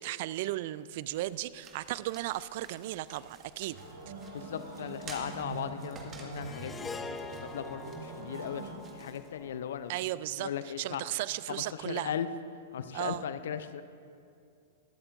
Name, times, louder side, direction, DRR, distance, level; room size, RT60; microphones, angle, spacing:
voice 1, 0.0-3.8 9.9-12.1 12.9-13.2, right 15 dB, 50° right, 18 dB, 0.3 m, -35 dB
sound 1, 1.0-9.9, right 4 dB, 25° right, 1.7 m, -53 dB
sound 2, 3.7-8.8, right 3 dB, 75° right, 2.9 m, -43 dB
voice 2, 4.3-8.7 8.9-9.9 10.4-11.0 11.5-12.3 12.7-13.8, left 9 dB, 60° left, 12 dB, 0.5 m, -37 dB
Harp, 6.4-10.8, left 3 dB, 15° left, 0.5 m, -45 dB
22.0 x 12.5 x 2.6 m, 2.4 s
figure-of-eight pair, 100°, 0 cm